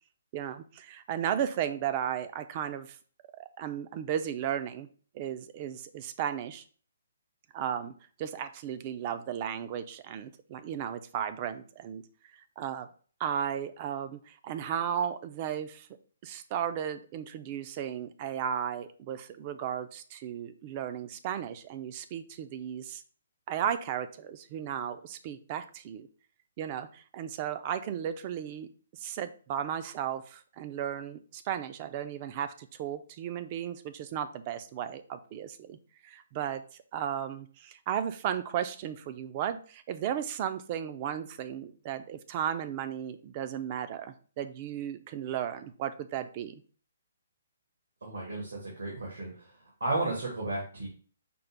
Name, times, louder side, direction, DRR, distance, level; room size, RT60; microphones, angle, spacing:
voice 1, 0.3-3.0 3.4-4.9 5.1-6.6 7.5-7.9 8.2-12.0 12.3-12.9 13.2-15.9 16.2-23.0 23.5-26.1 26.6-35.8 36.0-36.6 36.9-46.6, right 9 dB, 35° right, 11 dB, 0.4 m, -35 dB
voice 2, 48.0-49.5 49.8-50.9, right 2 dB, 90° right, -3 dB, 1.6 m, -33 dB
5.2 x 2.0 x 4.5 m, 0.42 s
hypercardioid pair, 145°, 0 cm